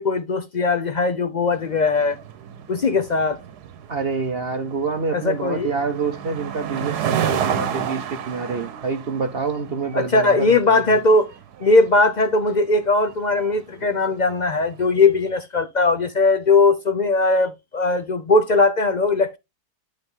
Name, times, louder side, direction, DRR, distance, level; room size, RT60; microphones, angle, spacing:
voice 1, 0.0-2.2 2.7-3.4 5.1-5.7 9.9-11.3 11.6-19.4, left 3 dB, 60° left, 0.4 m, -19 dB
sound 1, 1.5-15.0, right 9 dB, 85° right, 1.4 m, -32 dB
voice 2, 3.9-11.0, right 4 dB, 50° right, 0.8 m, -27 dB
11.0 x 3.9 x 3.6 m
omnidirectional pair, 1.7 m